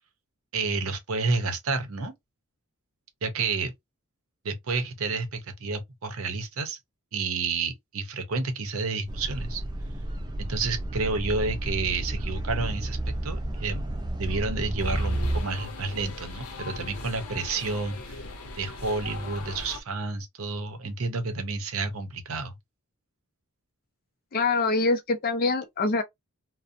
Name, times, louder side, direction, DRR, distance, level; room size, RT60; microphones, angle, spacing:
voice 1, 0.5-2.1 3.2-3.7 4.4-6.8 7.1-9.6 10.4-13.8 14.2-18.3 18.6-22.6, right 3 dB, 70° right, 0.6 m, -30 dB
sound 1, 9.1-15.4, right 1 dB, 20° right, 0.3 m, -31 dB
sound 2, 14.8-19.8, left 2 dB, 90° left, 0.6 m, -39 dB
voice 2, 24.3-26.0, left 3 dB, 40° left, 0.4 m, -24 dB
2.5 x 2.0 x 2.5 m
head